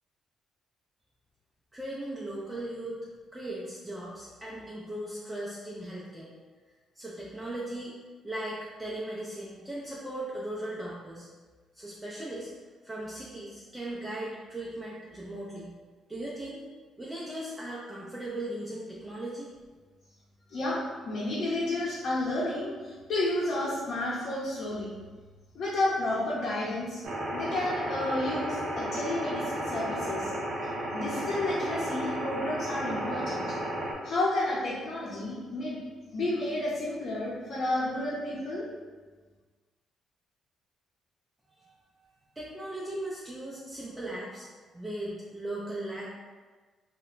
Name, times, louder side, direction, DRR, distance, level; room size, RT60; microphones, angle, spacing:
voice 1, 1.7-3.0 3.3-6.3 6.9-7.9 8.2-11.3 11.7-12.5 12.8-15.7 16.1-16.6 17.0-19.5 41.6-44.5 44.7-46.1, right 1 dB, 15° right, -7 dB, 0.5 m, -38 dB
voice 2, 20.5-24.9 25.5-27.0 27.3-30.3 30.9-33.6 34.0-35.8 36.1-38.7, left 1 dB, 60° left, -9 dB, 0.8 m, -31 dB
sound 1, 27.0-33.9, right 1 dB, 65° right, 0.5 m, -33 dB
2.2 x 2.1 x 3.7 m, 1.4 s
cardioid pair, 90°, 0 cm